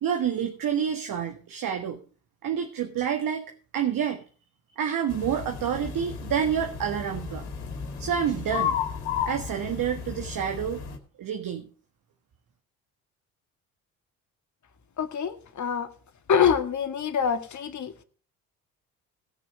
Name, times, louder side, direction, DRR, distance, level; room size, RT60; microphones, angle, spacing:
voice 1, 0.0-2.0 2.4-4.2 4.8-7.4 8.0-8.8 9.3-10.8 11.2-11.7, right 8 dB, 55° right, 6 dB, 1.5 m, -28 dB
sound 1, 5.1-11.0, left 7 dB, 75° left, 2.5 m, -33 dB
voice 2, 15.0-15.9 16.3-18.0, left 7 dB, 45° left, 8 dB, 1.9 m, -25 dB
17.5 x 6.1 x 6.3 m, 0.41 s
hypercardioid pair, 50°, 40 cm